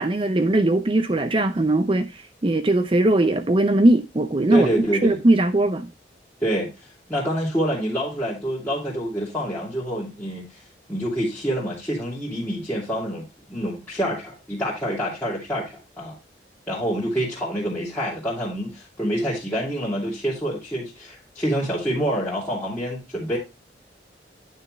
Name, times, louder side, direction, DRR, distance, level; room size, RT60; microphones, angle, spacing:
voice 1, 0.0-2.1 2.4-4.7 5.0-5.9, right 1 dB, 30° right, 0.6 m, -19 dB
voice 2, 4.5-5.2 6.4-6.7 7.1-10.6 10.9-13.2 13.5-16.2 16.7-23.4, equal, 10° left, 2.6 m, -26 dB
9.4 x 6.5 x 3.1 m
head